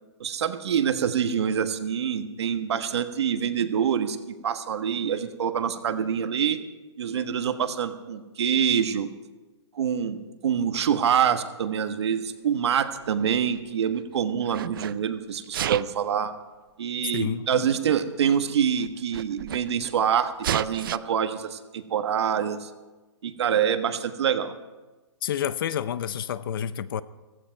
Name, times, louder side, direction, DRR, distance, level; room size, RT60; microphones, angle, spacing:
voice 1, 0.2-4.2 4.4-6.6 7.0-9.1 9.7-16.3 16.8-22.7 23.2-24.5, right 8 dB, 65° right, 9 dB, 1.4 m, -26 dB
Sneeze, 12.9-14.0 14.4-14.9 15.4-16.0 17.0-17.1 18.0-18.1 18.3-18.4 18.7-19.9 20.4-21.0, right 11 dB, 50° right, 0.4 m, -32 dB
voice 2, 17.1-17.7 25.2-27.0, left 9 dB, 50° left, 16 dB, 0.6 m, -29 dB
15.5 x 14.5 x 4.6 m, 1.2 s
hypercardioid pair, 160°, 15 cm